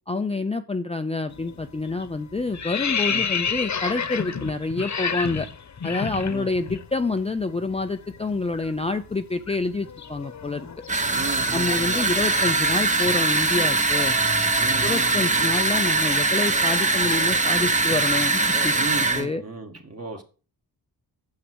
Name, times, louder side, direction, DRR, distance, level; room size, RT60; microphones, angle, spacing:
voice 1, 0.1-5.5 5.8-10.7 11.5-14.2 14.8-18.7 19.2-19.4, left 3 dB, 15° left, 7 dB, 0.6 m, -27 dB
sound 1, 1.3-1.6 1.9-6.8 7.1-7.3 7.6-11.7, left 6 dB, 45° left, 1.1 m, -30 dB
sound 2, 10.9-19.3, right 3 dB, 20° right, 0.9 m, -22 dB
voice 2, 11.1-12.2 14.5-15.5 18.7-20.2, right 4 dB, 35° right, 4 dB, 2.1 m, -35 dB
9.1 x 7.5 x 6.2 m, 0.36 s
wide cardioid pair, 115°, 41 cm